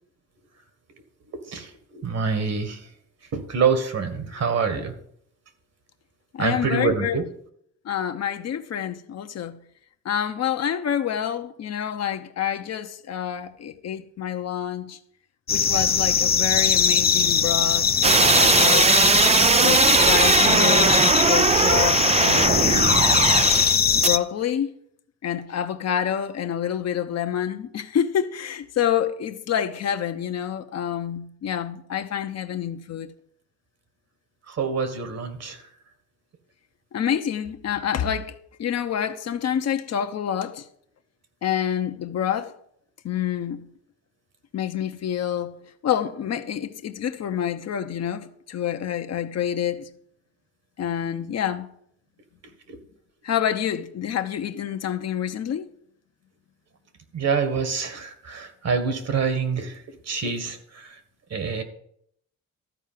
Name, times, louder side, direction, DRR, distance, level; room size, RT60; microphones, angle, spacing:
voice 1, 1.5-2.8 3.3-4.9 6.4-7.2 34.5-35.6 57.1-60.9 61.3-61.6, right 5 dB, 55° right, 1.8 m, -26 dB
voice 2, 6.3-7.2 7.8-9.6 10.0-15.0 15.5-17.9 18.2-18.9 19.6-23.0 23.9-24.7 25.2-33.1 36.9-40.7 41.4-42.5 43.0-43.7 44.5-45.6 45.8-49.9 50.8-51.7 53.2-55.7, left 9 dB, 60° left, 1.0 m, -27 dB
sound 1, 15.5-24.2, left 7 dB, 30° left, 0.6 m, -21 dB
sound 2, 18.0-23.8 24.0-24.1, right 6 dB, 25° right, 0.3 m, -19 dB
13.0 x 4.7 x 7.5 m
cardioid pair, 90°, 30 cm